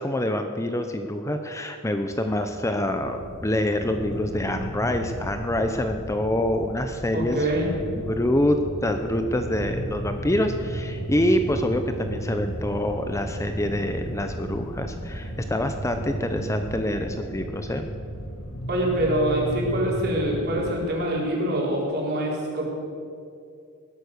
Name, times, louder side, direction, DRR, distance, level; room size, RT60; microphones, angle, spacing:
voice 1, 0.0-7.4 7.9-17.9, left 1 dB, 15° left, 6 dB, 0.7 m, -26 dB
sound 1, 2.1-17.1, equal, 50° left, 5.1 m, -39 dB
sound 2, 3.8-20.7, right 1 dB, 75° left, 2.1 m, -35 dB
voice 2, 7.1-7.7 18.7-22.6, right 1 dB, 50° right, -3 dB, 4.4 m, -25 dB
19.5 x 11.5 x 6.6 m, 2.4 s
head